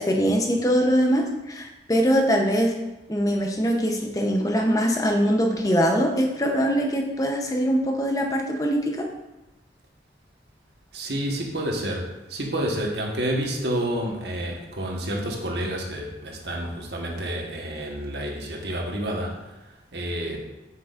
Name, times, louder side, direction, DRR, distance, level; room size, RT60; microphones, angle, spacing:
voice 1, 0.0-2.7 3.1-9.0, equal, 20° left, 2 dB, 0.7 m, -22 dB
voice 2, 10.9-20.4, right 1 dB, 75° right, 0 dB, 1.3 m, -29 dB
7.8 x 6.2 x 2.5 m, 0.98 s
head